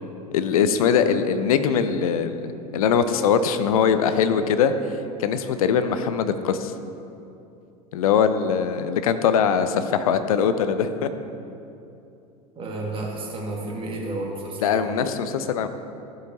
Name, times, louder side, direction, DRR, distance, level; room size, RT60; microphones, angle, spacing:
voice 1, 0.3-4.7 5.2-6.7 7.9-11.1 14.6-15.7, left 7 dB, 60° left, 10 dB, 0.6 m, -22 dB
voice 2, 12.6-14.9, right 2 dB, 25° right, -2 dB, 2.0 m, -31 dB
13.5 x 8.0 x 2.9 m, 2.7 s
figure-of-eight pair, 80°, 20 cm